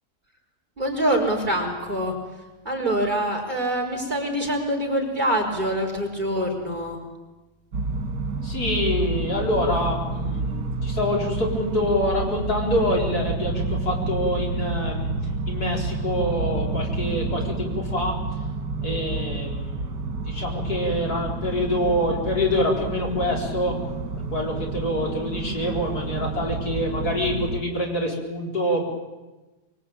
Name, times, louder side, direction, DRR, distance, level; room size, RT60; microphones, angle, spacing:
voice 1, 0.8-2.1 2.7-7.0, right 1 dB, 25° right, -2 dB, 5.3 m, -25 dB
sound 1, 7.7-27.6, right 3 dB, 70° right, 2.5 m, -29 dB
voice 2, 8.4-15.1 15.5-18.1 18.8-23.8 24.3-28.9, left 1 dB, 65° left, -1 dB, 5.0 m, -26 dB
24.0 x 23.0 x 8.9 m, 1.1 s
omnidirectional pair, 1.8 m